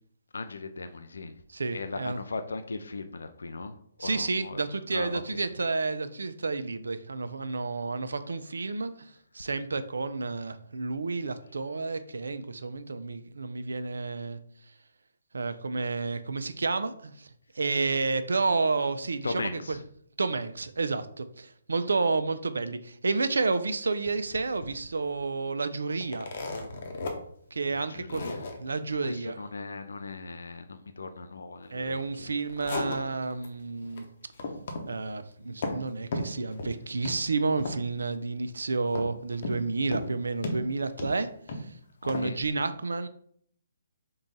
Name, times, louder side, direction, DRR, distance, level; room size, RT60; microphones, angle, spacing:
voice 1, 0.3-1.4 1.7-4.6 4.9-5.4 19.2-19.8 27.7-28.5 29.0-32.3 42.0-42.4, left 3 dB, 80° left, 8 dB, 0.3 m, -38 dB
voice 2, 1.5-2.2 4.0-14.4 15.3-19.8 20.2-26.3 27.5-28.3 28.6-29.4 31.7-34.1 34.9-41.3 41.5-41.7 42.0-43.1, right 3 dB, 85° right, 11 dB, 0.4 m, -30 dB
sound 1, 26.0-27.1 27.5-27.6 28.1-28.6 32.2-33.5 33.8-34.0 34.3-34.9 35.2-35.8 36.1-36.8 37.0-37.2 37.6-38.0 38.9-39.6 39.9-40.1 40.4-41.6 42.1-42.3, left 2 dB, 55° left, 0.7 m, -34 dB
3.7 x 2.3 x 3.9 m, 0.63 s
hypercardioid pair, 150°, 0 cm